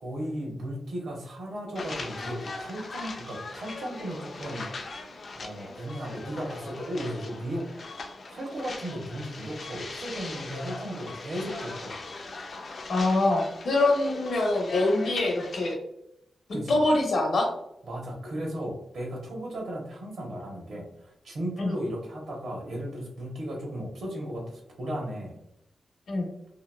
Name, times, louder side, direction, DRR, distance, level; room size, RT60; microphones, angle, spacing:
voice 1, 0.0-4.7 5.3-7.7 8.3-12.0 16.5-16.8 17.8-25.3, equal, 70° right, 0 dB, 0.8 m, -35 dB
sound 1, 1.8-15.7, left 3 dB, 45° left, 0.3 m, -40 dB
voice 2, 12.9-15.8 16.7-17.5 21.6-21.7 26.1-26.3, left 2 dB, 65° left, 1 dB, 0.7 m, -24 dB
2.8 x 2.2 x 2.3 m, 0.82 s
wide cardioid pair, 160°, 0 cm